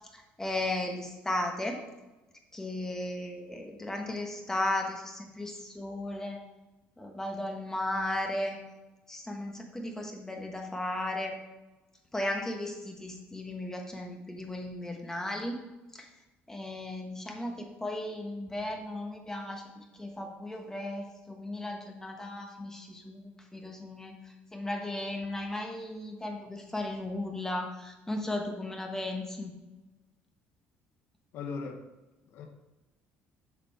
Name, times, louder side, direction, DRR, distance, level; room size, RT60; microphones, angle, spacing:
voice 1, 0.1-1.8 2.5-6.4 7.0-8.6 9.1-11.3 12.1-15.6 15.9-16.1 16.5-19.6 19.9-24.1 24.5-29.5, left 1 dB, 10° left, 2 dB, 1.2 m, -35 dB
voice 2, 31.3-31.8 32.2-32.5, left 5 dB, 70° left, 3 dB, 1.4 m, -38 dB
7.5 x 5.1 x 4.7 m, 1.1 s
cardioid pair, 105°, 4 cm